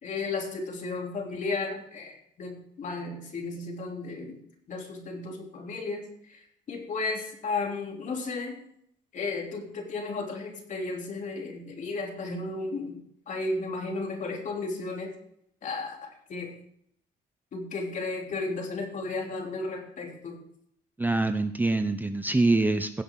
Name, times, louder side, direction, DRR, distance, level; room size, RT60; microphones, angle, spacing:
voice 1, 0.0-4.4 4.7-6.4 6.7-8.6 9.1-13.0 13.3-15.1 15.6-16.5 17.5-20.4, left 3 dB, 50° left, 1 dB, 3.1 m, -34 dB
voice 2, 21.0-23.0, right 2 dB, 10° right, 9 dB, 0.6 m, -25 dB
16.5 x 7.8 x 3.8 m, 0.69 s
cardioid pair, 110°, 17 cm